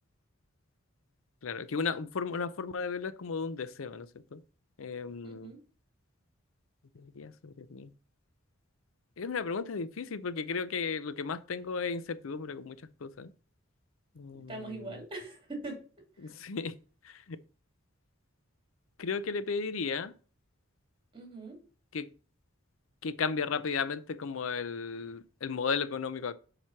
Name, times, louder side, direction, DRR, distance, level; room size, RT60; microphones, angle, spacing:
voice 1, 1.4-4.4 4.8-5.5 7.0-7.9 9.2-12.8 13.0-13.3 14.2-14.9 16.2-16.7 17.0-17.4 19.0-20.1 21.9-22.1 23.0-26.3, left 5 dB, 85° left, 0.6 m, -35 dB
voice 2, 5.2-5.6 14.5-15.8 16.2-16.3 21.1-21.6, right 2 dB, 25° right, 3.0 m, -42 dB
7.5 x 4.9 x 5.8 m
head